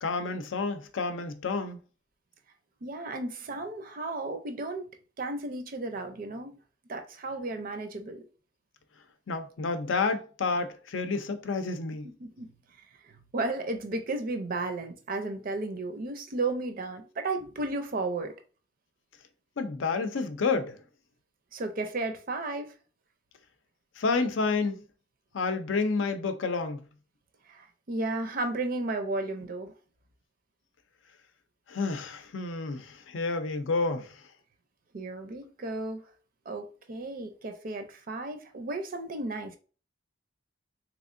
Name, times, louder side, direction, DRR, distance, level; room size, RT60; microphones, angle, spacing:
voice 1, 0.0-1.8 9.3-12.1 19.6-20.8 24.0-24.8 25.3-26.8 31.7-34.3, left 4 dB, 85° left, 0.5 m, -30 dB
voice 2, 2.8-4.9 5.2-6.6 6.9-8.2 12.0-12.5 13.0-18.3 21.5-22.8 27.5-29.7 34.9-36.0 36.5-39.6, right 2 dB, 50° right, 0.5 m, -34 dB
3.5 x 3.0 x 2.5 m
head